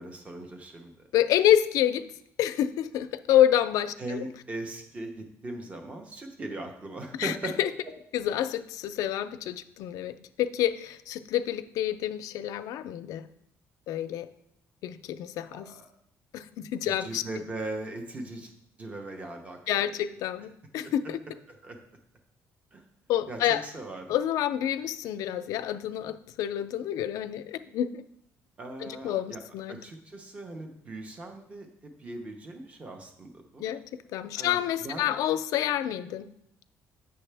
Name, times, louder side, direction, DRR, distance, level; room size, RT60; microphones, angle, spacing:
voice 1, 0.0-1.1 4.0-7.5 15.5-15.9 16.8-18.5 18.8-19.6 20.8-20.9 21.6-21.8 22.7-22.8 23.3-24.1 28.6-29.4 29.7-33.7 34.4-35.0, right 2 dB, 20° right, 4 dB, 0.8 m, -39 dB
voice 2, 1.1-2.1 2.4-4.2 7.2-7.7 8.1-13.3 13.9-14.3 14.8-15.7 16.3-17.2 19.7-21.2 23.1-23.6 24.1-28.0 28.8-29.7 33.6-36.3, left 11 dB, 75° left, 10 dB, 0.4 m, -28 dB
8.4 x 6.6 x 3.4 m, 0.73 s
cardioid pair, 170°, 6 cm